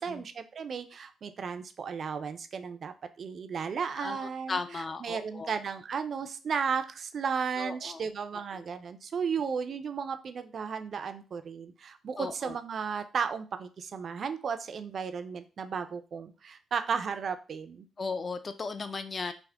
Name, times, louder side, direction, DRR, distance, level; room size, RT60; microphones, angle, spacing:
voice 1, 0.0-17.9, right 6 dB, 50° right, 9 dB, 0.4 m, -34 dB
voice 2, 4.0-5.5 7.6-8.1 8.5-8.6 12.2-12.6 18.0-19.3, left 4 dB, 35° left, 10 dB, 0.4 m, -36 dB
3.4 x 2.1 x 3.4 m, 0.33 s
cardioid pair, 90°, 0 cm